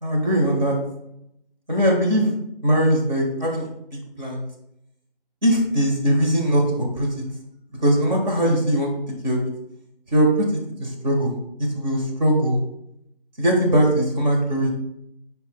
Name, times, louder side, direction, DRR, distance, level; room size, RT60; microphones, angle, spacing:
voice 1, 0.0-0.8 1.7-2.3 2.6-4.4 5.4-7.1 7.8-8.9 9.2-9.4 10.1-10.5 10.8-11.3 11.7-12.6 13.4-14.7, equal, 50° right, -1 dB, 1.7 m, -20 dB
9.5 x 4.6 x 2.3 m, 0.81 s
figure-of-eight pair, 160°, 29 cm